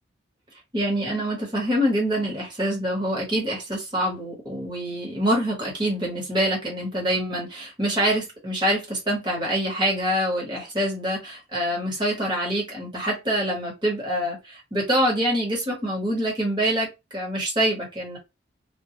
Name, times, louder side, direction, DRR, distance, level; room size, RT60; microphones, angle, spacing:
voice 1, 0.7-18.2, equal, 25° right, 1.0 m, -25 dB
2.2 x 2.2 x 2.7 m
head